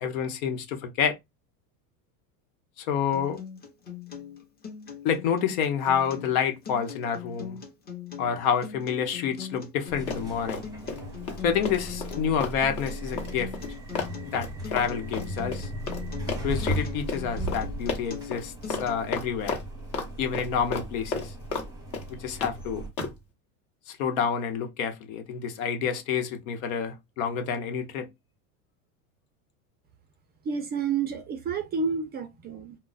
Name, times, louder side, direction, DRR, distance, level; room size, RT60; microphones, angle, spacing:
voice 1, 0.0-1.2 2.8-3.4 5.0-7.6 8.2-10.6 11.4-13.6 14.2-15.7 16.4-19.6 20.2-21.3 22.1-22.9 23.9-28.1, left 7 dB, 75° left, 0.9 m, -28 dB
Acoustic guitar, 3.1-19.1, left 7 dB, 20° left, 0.8 m, -41 dB
sound 1, 9.9-22.9, right 1 dB, 10° right, 0.9 m, -37 dB
Run, 10.1-11.0 11.3-16.0 16.3-16.8 17.1-17.2 17.5-17.6 17.9-18.4 18.7-18.9 19.1-20.1 20.3-21.7 21.9-22.5 23.0-23.2, left 4 dB, 45° left, 1.1 m, -32 dB
voice 2, 30.4-32.8, right 5 dB, 25° right, 0.4 m, -30 dB
2.3 x 2.1 x 3.8 m
supercardioid pair, 125°, 42 cm